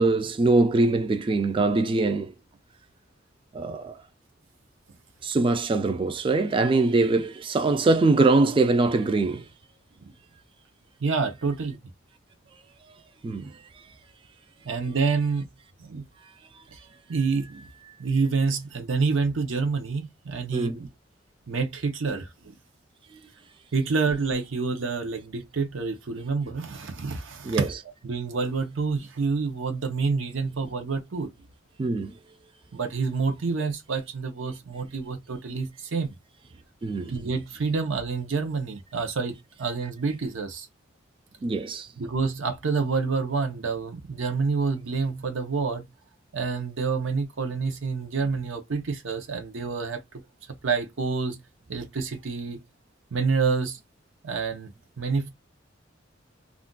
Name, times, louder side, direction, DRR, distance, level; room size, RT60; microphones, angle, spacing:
voice 1, 0.0-2.3 3.5-4.0 5.2-9.5 13.2-13.9 20.5-20.8 23.1-23.2 27.4-27.7 31.8-32.2 36.8-37.1 41.4-41.9, right 3 dB, 25° right, 0.3 m, -23 dB
voice 2, 11.0-11.8 14.6-15.5 15.8-16.0 16.7-16.8 17.1-17.6 18.0-20.9 21.5-22.5 23.7-27.7 28.0-31.3 32.7-36.2 37.1-40.7 42.0-45.9 46.3-50.2 50.6-51.4 51.7-52.6 53.1-53.8 54.2-54.7 55.0-55.3, right 4 dB, 80° right, 0.6 m, -28 dB
2.4 x 2.2 x 3.7 m
head